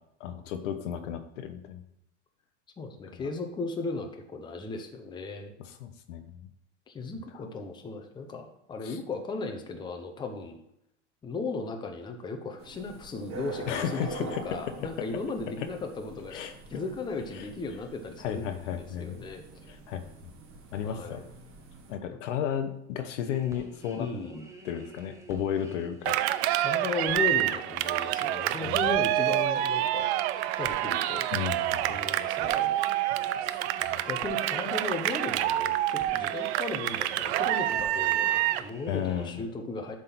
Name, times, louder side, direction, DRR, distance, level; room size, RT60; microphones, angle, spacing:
voice 1, 0.2-1.8 3.2-3.3 5.6-6.5 7.1-7.4 8.8-9.0 13.7-14.4 14.8-14.9 15.6-15.7 16.3-16.5 17.3-17.5 18.2-19.2 19.7-20.0 20.7-21.2 21.9-24.1 24.6-26.2 28.6-28.9 31.3-32.0 33.8-34.0 38.9-39.4, left 9 dB, 85° left, 8 dB, 1.0 m, -34 dB
voice 2, 2.8-5.5 6.9-10.6 11.2-19.4 20.8-21.3 24.0-24.5 26.6-30.1 30.6-31.3 31.9-32.8 34.0-40.0, left 3 dB, 15° left, 5 dB, 0.7 m, -36 dB
sound 1, 12.6-21.9, right 4 dB, 35° right, 1.9 m, -46 dB
sound 2, 23.3-39.3, right 2 dB, 10° right, 0.9 m, -49 dB
Cheering, 26.1-38.7, right 14 dB, 65° right, 0.5 m, -27 dB
8.1 x 3.8 x 5.9 m, 0.78 s
supercardioid pair, 145°, 36 cm